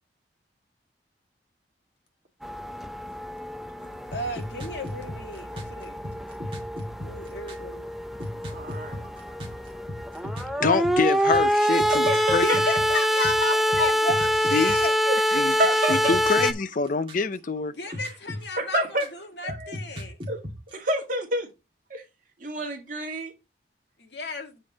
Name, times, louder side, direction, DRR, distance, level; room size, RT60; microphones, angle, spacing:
sound 1, 2.4-16.5, equal, ahead, 0.5 m, -26 dB
voice 1, 3.4-6.0 7.0-7.9 12.4-15.0 17.8-19.0 19.4-20.2 24.0-24.6, left 3 dB, 75° left, 1.6 m, -33 dB
sound 2, 4.1-7.7 8.2-15.4 15.9-17.6 17.8-19.2 19.5-20.7, left 1 dB, 30° right, 2.2 m, -35 dB
voice 2, 8.5-9.0 11.8-12.6 13.8-13.9 15.0-16.1 17.9-18.0 18.6-19.1 19.4-19.7 20.3-20.4 20.7-21.5 21.9-22.0 22.4-23.3, right 1 dB, 45° right, 2.2 m, -29 dB
voice 3, 10.6-12.1 12.3-12.4 14.5-14.7 15.3-15.5 15.9-17.7, left 4 dB, 50° left, 0.5 m, -25 dB
7.5 x 5.2 x 3.9 m
head